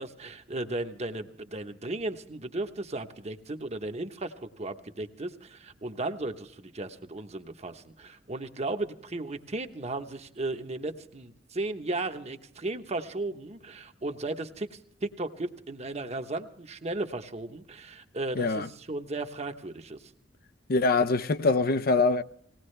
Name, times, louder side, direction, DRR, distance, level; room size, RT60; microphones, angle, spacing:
voice 1, 0.0-20.0, right 2 dB, 35° right, 1.0 m, -35 dB
voice 2, 18.4-18.7 20.7-22.2, left 3 dB, 55° left, 0.6 m, -24 dB
19.5 x 18.0 x 3.3 m
head